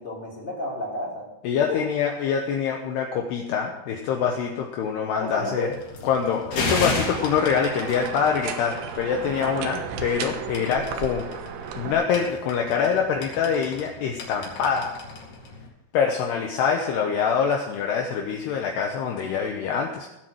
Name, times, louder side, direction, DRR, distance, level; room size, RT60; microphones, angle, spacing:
voice 1, 0.0-1.3 1.7-1.8 5.1-5.8 9.4-9.8, left 2 dB, 10° left, -4 dB, 3.5 m, -32 dB
voice 2, 1.4-5.7 6.1-11.3 11.8-14.9 15.9-20.1, left 6 dB, 75° left, 2 dB, 2.7 m, -25 dB
sound 1, 5.7-15.7, left 3 dB, 50° left, 3.2 m, -35 dB
sound 2, 6.5-11.9, right 7 dB, 85° right, 3.6 m, -34 dB
17.0 x 8.3 x 6.3 m, 0.94 s
omnidirectional pair, 5.5 m